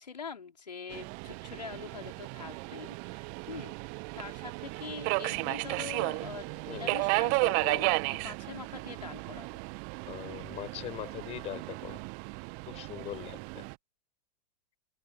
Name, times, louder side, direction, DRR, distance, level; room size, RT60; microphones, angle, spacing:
voice 1, 0.0-3.7 4.1-9.6, left 6 dB, 75° left, 4.5 m, -44 dB
Subway metro underground, 0.9-13.7, right 37 dB, 40° right, 1.2 m, -34 dB
voice 2, 6.7-7.0 10.1-12.0 12.6-13.6, left 14 dB, 30° left, 7.3 m, -41 dB
open air
figure-of-eight pair, 100°, 21 cm